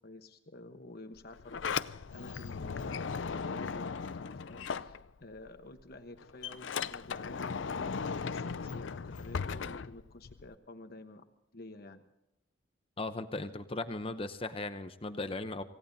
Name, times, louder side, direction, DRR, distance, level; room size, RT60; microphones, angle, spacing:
voice 1, 0.0-7.9 8.2-11.2 11.5-12.0, left 2 dB, 55° left, 7 dB, 1.1 m, -50 dB
Sliding door, 1.2-5.5 5.8-10.5, left 6 dB, 80° left, 0.5 m, -37 dB
voice 2, 13.0-15.6, left 2 dB, 30° left, 10 dB, 0.7 m, -37 dB
26.5 x 17.0 x 2.7 m, 0.86 s
head